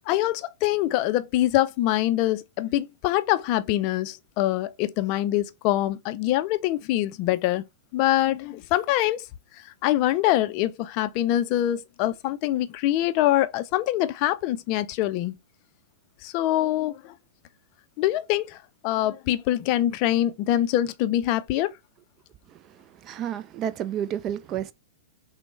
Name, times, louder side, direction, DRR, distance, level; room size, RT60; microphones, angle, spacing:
voice 1, 0.1-7.6 7.9-9.3 9.8-15.3 16.2-17.1 18.0-18.6 18.8-21.7, left 14 dB, 40° left, 0.4 m, -24 dB
voice 2, 23.0-24.7, right 10 dB, 30° right, 0.4 m, -30 dB
5.9 x 2.1 x 3.1 m
figure-of-eight pair, 100°, 0 cm